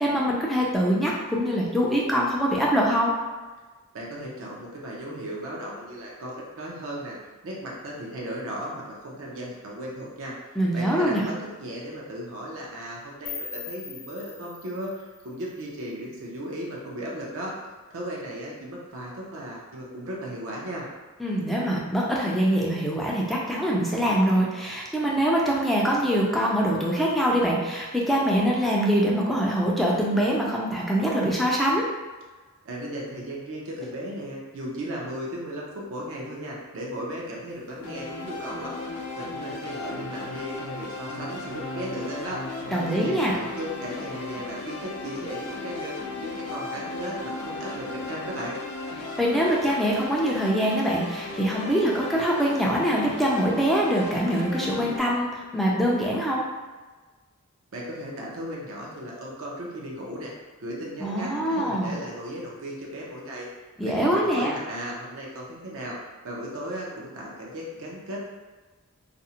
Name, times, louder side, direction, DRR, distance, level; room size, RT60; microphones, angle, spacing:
voice 1, 0.0-3.1 10.6-11.2 21.2-31.9 42.7-43.3 49.2-56.4 61.0-61.9 63.8-64.5, equal, ahead, -4 dB, 0.3 m, -24 dB
voice 2, 3.9-7.2 7.4-10.3 10.7-17.5 17.9-20.9 32.6-38.8 39.2-42.4 42.9-48.6 57.7-60.3 60.6-63.5 63.8-66.0 66.2-68.2, equal, 65° right, -4 dB, 0.5 m, -36 dB
sound 1, 13.2-16.2, left 6 dB, 40° left, 0.6 m, -41 dB
sound 2, 37.8-55.0, left 2 dB, 80° left, 0.4 m, -36 dB
2.5 x 2.0 x 2.7 m, 1.3 s
head